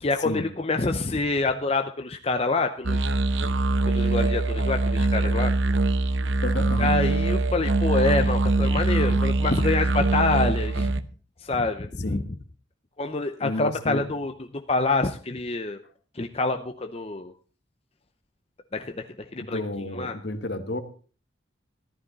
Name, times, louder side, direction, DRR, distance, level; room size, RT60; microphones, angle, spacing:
voice 1, 0.0-3.1 3.9-5.5 6.8-10.9 11.4-12.2 13.0-15.8 16.1-17.3 18.7-19.1 19.3-19.6 19.9-20.1, left 3 dB, 30° left, 0.7 m, -26 dB
sound 1, 2.8-11.0, right 3 dB, 75° right, 0.8 m, -23 dB
voice 2, 6.4-7.0 12.0-12.3 13.4-14.1 19.4-20.8, left 1 dB, 60° left, 1.4 m, -31 dB
14.5 x 12.5 x 4.0 m
head